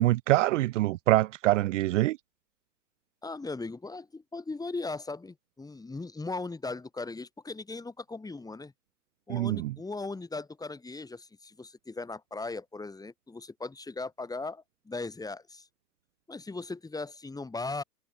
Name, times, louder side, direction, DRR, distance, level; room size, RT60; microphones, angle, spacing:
voice 1, 0.0-2.2 9.3-9.7, right 17 dB, 50° right, 0.9 m, -25 dB
voice 2, 3.2-8.7 9.3-15.7 16.3-17.8, left 3 dB, 5° left, 4.5 m, -38 dB
hypercardioid pair, 110°, 49 cm